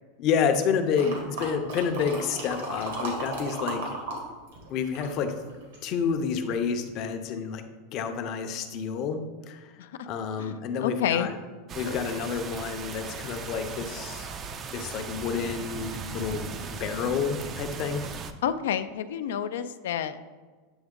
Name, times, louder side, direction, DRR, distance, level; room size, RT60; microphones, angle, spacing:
voice 1, 0.2-4.0 4.7-5.3 5.8-7.6 7.9-9.2 9.5-9.7 10.1-11.4 11.7-14.3 14.7-18.0, left 6 dB, 35° left, 7 dB, 0.5 m, -29 dB
sound 1, 0.9-4.2 4.5-5.9 6.4-6.5, right 2 dB, 85° right, 1.8 m, -35 dB
voice 2, 10.8-11.3 11.8-12.2 18.4-20.2, left 9 dB, 85° left, 11 dB, 0.3 m, -29 dB
sound 2, 11.7-18.3, right 5 dB, 25° right, 0.3 m, -38 dB
7.9 x 3.5 x 3.7 m, 1.4 s
supercardioid pair, 165°, 0 cm